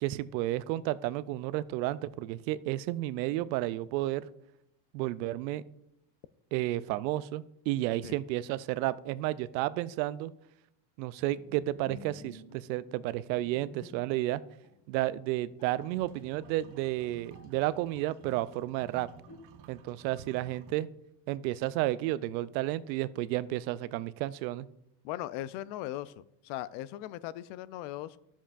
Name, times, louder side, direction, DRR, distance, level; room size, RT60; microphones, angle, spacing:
voice 1, 0.0-4.3 4.9-5.6 6.5-10.3 11.0-14.4 14.9-19.1 19.7-20.9 21.3-24.7, right 16 dB, 85° right, 17 dB, 0.6 m, -32 dB
Bowed string instrument, 11.3-14.3 14.6-14.8 15.3-15.4 15.6-17.5 17.8-18.6 19.3-19.9, left 3 dB, 45° left, 1.6 m, -54 dB
sound 1, 15.7-20.7, right 6 dB, 55° right, 1.1 m, -54 dB
voice 2, 25.0-28.2, left 14 dB, 65° left, 18 dB, 0.5 m, -39 dB
12.5 x 7.2 x 2.5 m, 0.84 s
supercardioid pair, 120°, 50 cm